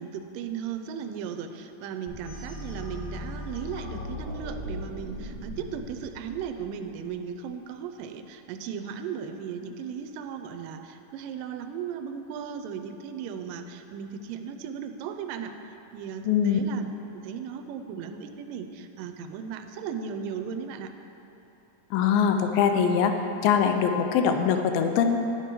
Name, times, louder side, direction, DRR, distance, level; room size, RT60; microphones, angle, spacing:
voice 1, 0.0-16.9 17.1-20.9, right 7 dB, 80° right, 7 dB, 2.2 m, -36 dB
sound 1, 2.1-7.0, equal, 65° left, 3.7 m, -38 dB
voice 2, 16.3-16.6 21.9-23.2 23.4-25.2, left 7 dB, 85° left, 6 dB, 2.4 m, -22 dB
11.5 x 8.3 x 4.6 m, 3.0 s
omnidirectional pair, 4.2 m